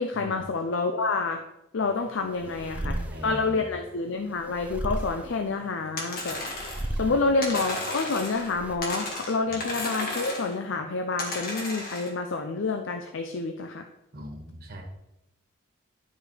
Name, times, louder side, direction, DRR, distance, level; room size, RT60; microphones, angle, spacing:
voice 1, 0.0-1.4 1.7-6.4 7.0-13.9, left 3 dB, 60° left, 6 dB, 0.5 m, -28 dB
sound 1, 1.8-8.8, right 1 dB, 5° right, 0.5 m, -37 dB
voice 2, 2.7-3.7 7.0-7.1 14.1-14.8, right 1 dB, 50° right, 2 dB, 1.5 m, -40 dB
sound 2, 6.0-6.9 7.4-8.5 8.8-10.5 11.2-12.1, left 2 dB, 45° left, 1.6 m, -34 dB
11.0 x 4.9 x 3.2 m, 0.88 s
head